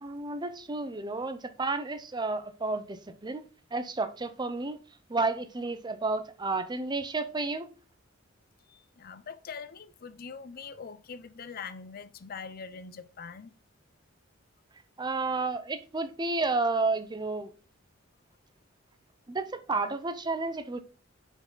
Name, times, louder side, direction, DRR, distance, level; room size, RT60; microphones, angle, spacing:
voice 1, 0.0-3.0 3.2-3.4 3.7-4.8 5.1-7.7 15.0-17.5 19.3-20.8, right 3 dB, 20° right, 0.6 m, -31 dB
voice 2, 8.7-13.5, left 5 dB, 50° left, 0.5 m, -43 dB
5.7 x 4.7 x 3.8 m
head